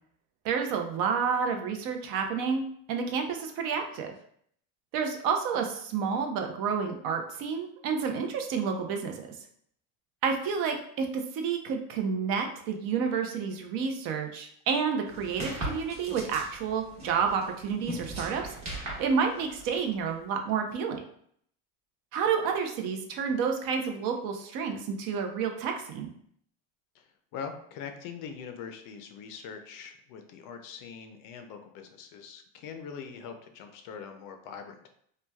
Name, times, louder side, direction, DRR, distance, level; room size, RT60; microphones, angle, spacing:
voice 1, 0.4-4.1 4.9-9.2 10.2-18.4 19.0-21.0 22.1-26.1, right 6 dB, 55° right, 4 dB, 0.6 m, -30 dB
sound 1, 15.1-20.1, right 1 dB, 40° right, 1.1 m, -40 dB
voice 2, 27.3-34.9, left 6 dB, 50° left, 6 dB, 0.4 m, -42 dB
3.1 x 2.2 x 2.2 m, 0.64 s
supercardioid pair, 115°, 43 cm